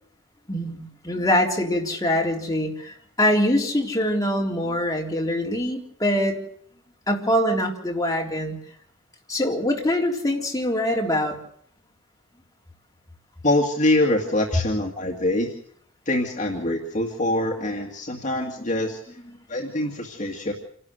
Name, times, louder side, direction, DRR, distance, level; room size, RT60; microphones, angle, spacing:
voice 1, 0.5-6.4 7.1-8.6 9.3-11.4, left 1 dB, 20° left, 0 dB, 3.8 m, -24 dB
voice 2, 13.4-15.5 16.1-19.0 19.5-20.5, left 1 dB, 40° left, 1 dB, 2.2 m, -24 dB
28.0 x 12.0 x 8.1 m, 0.62 s
head